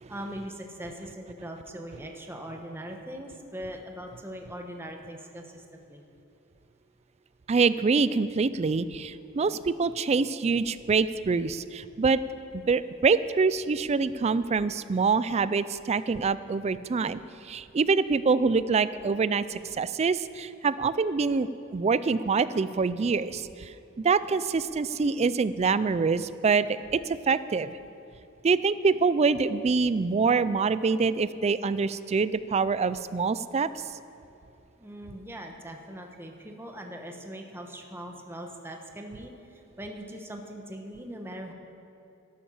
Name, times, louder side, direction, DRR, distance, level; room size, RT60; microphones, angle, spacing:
voice 1, 0.1-6.0 34.8-41.5, equal, 10° right, 2 dB, 1.0 m, -41 dB
voice 2, 7.5-12.2 12.5-17.2 17.4-23.7 24.0-27.8 28.4-33.7, right 4 dB, 30° right, 15 dB, 0.4 m, -25 dB
13.0 x 12.5 x 5.6 m, 2.6 s
head